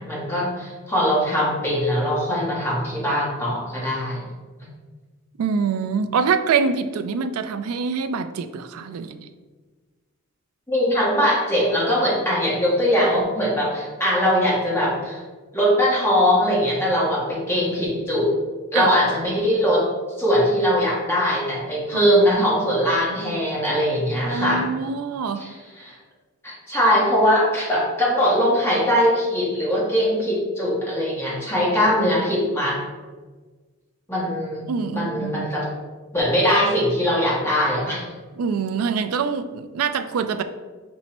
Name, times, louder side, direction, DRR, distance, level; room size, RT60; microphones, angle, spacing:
voice 1, 0.0-4.2 4.6-4.7 10.7-15.2 15.5-18.3 18.7-19.9 20.2-24.7 25.4-26.0 26.4-32.8 34.1-34.7 34.9-35.7 36.1-38.1, equal, 10° left, -5 dB, 0.9 m, -21 dB
voice 2, 5.4-9.3 18.7-18.9 21.9-22.7 24.2-25.5 34.7-35.5 38.4-40.4, right 5 dB, 80° right, 10 dB, 0.3 m, -25 dB
5.3 x 2.1 x 4.2 m, 1.4 s
head